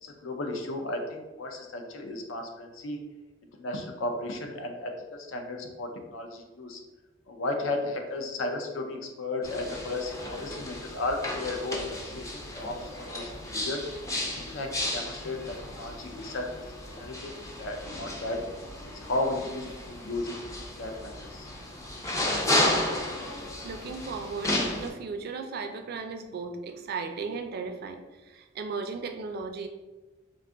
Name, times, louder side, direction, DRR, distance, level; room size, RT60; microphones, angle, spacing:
voice 1, 0.0-3.0 3.6-4.9 5.3-6.8 7.3-12.8 13.1-13.8 14.5-16.6 17.0-17.3 17.6-18.4 18.9-20.3 20.8-21.5, left 2 dB, 80° left, 4 dB, 0.5 m, -34 dB
sound 1, 9.4-24.9, left 1 dB, 15° left, 0.4 m, -33 dB
voice 2, 23.6-29.7, right 4 dB, 55° right, 6 dB, 0.3 m, -36 dB
2.5 x 2.3 x 3.6 m, 1.1 s
head